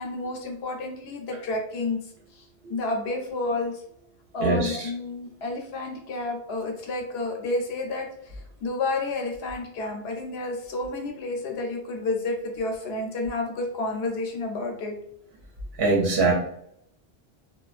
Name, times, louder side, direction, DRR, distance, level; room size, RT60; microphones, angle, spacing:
voice 1, 0.0-2.0 2.3-3.8 4.3-15.0, left 2 dB, 80° left, 2 dB, 0.8 m, -30 dB
voice 2, 4.4-4.8 15.8-16.3, right 3 dB, 75° right, -1 dB, 0.8 m, -21 dB
2.3 x 2.2 x 2.4 m, 0.71 s
omnidirectional pair, 1.0 m